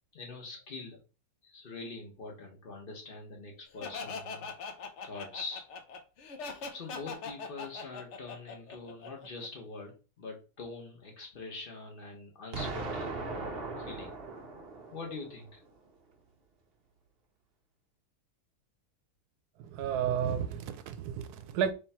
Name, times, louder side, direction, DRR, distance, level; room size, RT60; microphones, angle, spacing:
voice 1, 0.1-1.0 1.4-5.7 6.7-13.4 13.8-14.2 14.9-15.6, left 3 dB, 40° left, 1.2 m, -44 dB
Laughter, 3.8-9.5, left 4 dB, 60° left, 0.9 m, -41 dB
Explosion, 12.5-15.5, right 3 dB, 50° right, 0.8 m, -38 dB
voice 2, 19.6-21.7, right 8 dB, 85° right, 1.1 m, -32 dB
3.5 x 3.0 x 4.2 m
omnidirectional pair, 1.6 m